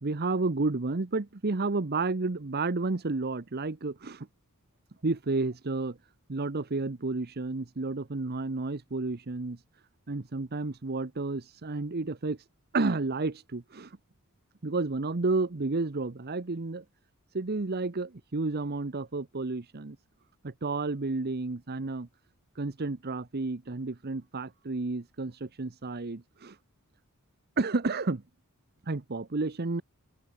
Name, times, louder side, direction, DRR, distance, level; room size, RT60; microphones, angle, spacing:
voice 1, 0.0-4.3 5.0-6.0 6.3-9.6 10.1-12.4 12.7-14.0 14.6-16.8 17.3-20.0 20.4-22.1 22.6-26.6 27.6-28.2 28.9-29.8, right 3 dB, 45° right, 0.9 m, -31 dB
open air
head